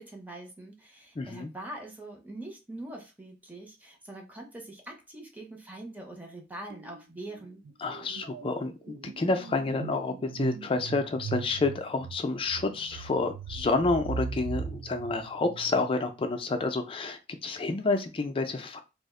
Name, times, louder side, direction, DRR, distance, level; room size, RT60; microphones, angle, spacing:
voice 1, 0.0-7.6, right 1 dB, 10° right, 0.6 m, -43 dB
voice 2, 1.2-1.5 7.8-18.8, left 3 dB, 30° left, 0.4 m, -29 dB
sound 1, 6.7-7.0 7.3-16.1, right 6 dB, 90° right, 0.3 m, -39 dB
2.4 x 2.0 x 3.6 m
head